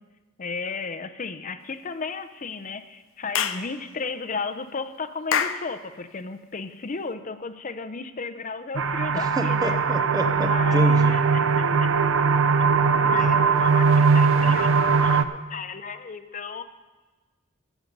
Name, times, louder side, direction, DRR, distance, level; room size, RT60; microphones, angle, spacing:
voice 1, 0.4-9.8 10.4-11.9 13.0-16.6, left 4 dB, 40° left, 10 dB, 0.6 m, -34 dB
Clapping / Chirp tweet, 3.3-3.7 5.3-5.7, left 8 dB, 85° left, 0.6 m, -24 dB
sound 1, 8.7-15.2, right 5 dB, 80° right, 0.5 m, -20 dB
voice 2, 9.1-11.2 13.0-13.2, equal, 20° right, 7 dB, 0.7 m, -29 dB
14.0 x 7.8 x 5.3 m, 1.2 s
head